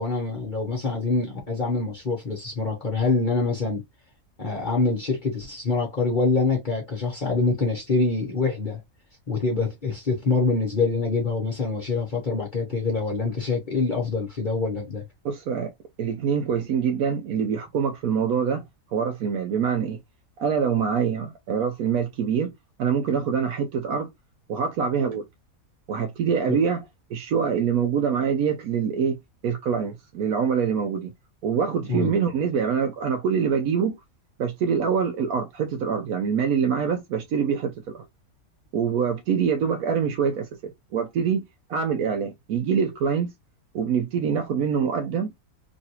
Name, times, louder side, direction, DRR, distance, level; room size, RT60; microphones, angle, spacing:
voice 1, 0.0-3.8 4.4-8.8 9.3-15.0 26.5-26.6 31.9-32.1, left 3 dB, 40° left, 1.0 m, -25 dB
voice 2, 15.2-15.7 16.0-18.6 18.9-20.0 20.4-22.5 22.8-24.1 24.5-25.3 25.9-26.8 27.1-29.2 29.4-31.1 31.4-34.0 34.4-38.0 38.7-41.4 41.7-43.3 43.7-45.3, right 7 dB, 80° right, 1.1 m, -25 dB
3.1 x 2.5 x 2.8 m
omnidirectional pair, 1.5 m